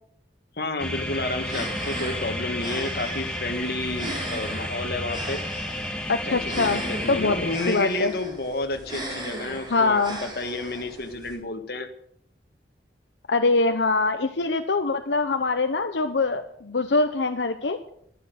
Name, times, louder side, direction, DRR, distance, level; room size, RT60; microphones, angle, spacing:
voice 1, 0.6-5.4 6.2-11.9, left 2 dB, 60° left, 6 dB, 1.7 m, -31 dB
sound 1, 0.8-7.6, left 1 dB, 5° left, 1.7 m, -32 dB
sound 2, 1.4-11.3, right 1 dB, 25° right, 4.5 m, -38 dB
voice 2, 6.1-6.8 7.1-7.4 7.7-8.1 9.7-10.2 13.3-17.8, left 3 dB, 90° left, 6 dB, 0.9 m, -23 dB
12.5 x 11.0 x 6.6 m, 0.67 s
head